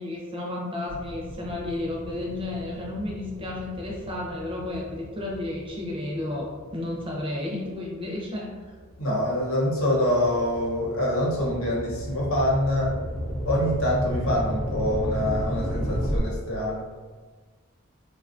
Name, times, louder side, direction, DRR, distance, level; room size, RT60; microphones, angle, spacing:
voice 1, 0.0-8.5, left 2 dB, 25° right, -2 dB, 0.6 m, -32 dB
sound 1, 0.9-7.6 8.2-16.2, equal, 35° left, 0.5 m, -34 dB
voice 2, 9.0-13.0 13.4-16.8, left 1 dB, 70° left, -4 dB, 0.9 m, -25 dB
3.6 x 2.4 x 2.5 m, 1.4 s
head